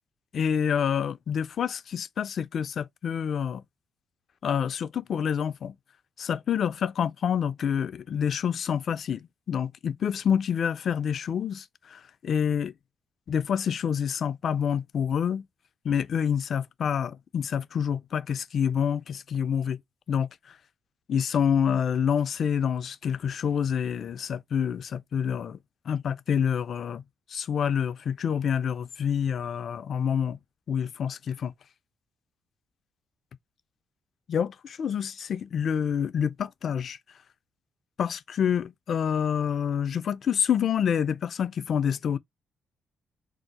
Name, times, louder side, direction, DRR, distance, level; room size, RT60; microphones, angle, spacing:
voice 1, 0.3-3.6 4.4-5.7 6.2-12.7 13.3-15.4 15.8-19.8 20.1-20.5 21.1-25.6 25.9-27.0 27.3-30.4 30.7-31.5 34.3-37.0 38.0-42.2, left 8 dB, 55° left, 0.4 m, -27 dB
2.6 x 2.1 x 4.0 m
cardioid pair, 90°, 0 cm